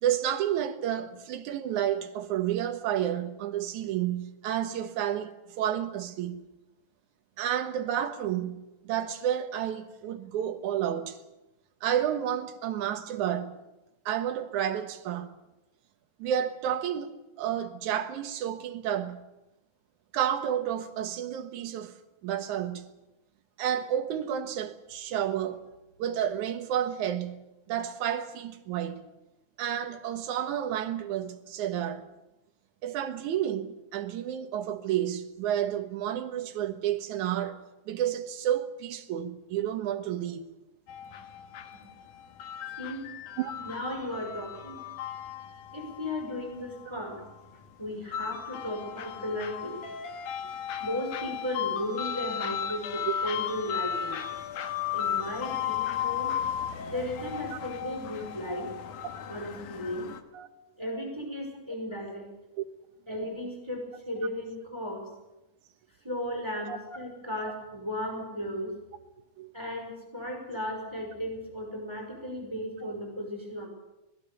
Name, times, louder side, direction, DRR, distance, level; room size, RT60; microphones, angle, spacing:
voice 1, 0.0-5.3 5.6-6.4 7.4-11.2 11.8-13.6 14.1-15.3 16.2-19.2 20.1-21.9 22.2-22.8 23.6-25.7 26.0-29.0 29.6-32.1 32.8-37.6 37.9-40.4 43.4-43.5 46.9-47.0 53.1-53.2 59.4-59.5 60.3-60.5 62.6-62.7 66.7-66.8 69.4-69.5 72.8-72.9, right 10 dB, 75° right, 2.7 m, -30 dB
sound 1, 40.9-60.2, left 9 dB, 85° left, 2.9 m, -35 dB
voice 2, 43.6-44.8 45.7-47.2 47.8-49.8 50.8-54.2 54.9-56.3 56.9-58.7 59.3-60.1 60.8-62.3 63.1-65.1 66.0-68.8 69.5-73.7, left 1 dB, 10° right, 5.4 m, -35 dB
25.0 x 19.0 x 7.0 m
omnidirectional pair, 3.5 m